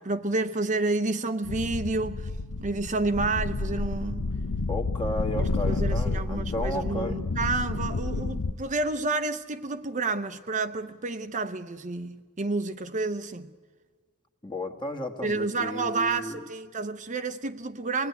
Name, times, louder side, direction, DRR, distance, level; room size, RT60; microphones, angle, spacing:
voice 1, 0.0-2.3 2.6-4.2 5.4-13.5 15.2-18.1, right 3 dB, 35° right, 0.7 m, -30 dB
sound 1, 1.4-8.5, left 3 dB, 85° left, 0.8 m, -30 dB
voice 2, 4.7-7.2 14.4-16.4, left 1 dB, 20° left, 1.4 m, -33 dB
26.0 x 19.5 x 9.5 m
head